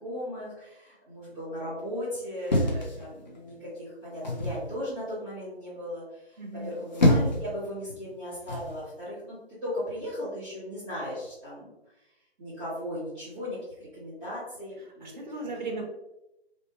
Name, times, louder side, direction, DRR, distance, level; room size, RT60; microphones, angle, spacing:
voice 1, 0.0-9.4 9.6-11.7 12.4-15.1 15.4-15.8, equal, 5° right, -14 dB, 0.6 m, -37 dB
sound 1, 2.5-3.5 4.2-4.6 6.6-7.5 8.5-8.8, left 1 dB, 45° left, 0.5 m, -25 dB
voice 2, 6.4-6.8 15.0-15.8, right 2 dB, 45° right, 0 dB, 0.5 m, -36 dB
2.6 x 2.0 x 2.8 m, 0.89 s
figure-of-eight pair, 155°, 32 cm